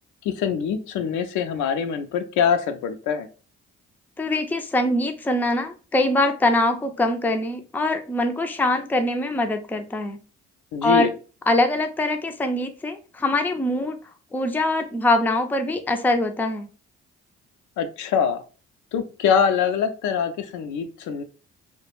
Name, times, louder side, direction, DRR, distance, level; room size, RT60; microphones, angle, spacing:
voice 1, 0.2-3.3 10.7-11.1 17.8-18.4 18.9-21.2, left 7 dB, 75° left, 8 dB, 0.4 m, -24 dB
voice 2, 4.2-10.2 10.8-11.1 11.5-14.0 14.3-16.7, left 2 dB, 5° left, 6 dB, 0.4 m, -23 dB
2.3 x 2.1 x 3.0 m, 0.36 s
supercardioid pair, 55°, 31 cm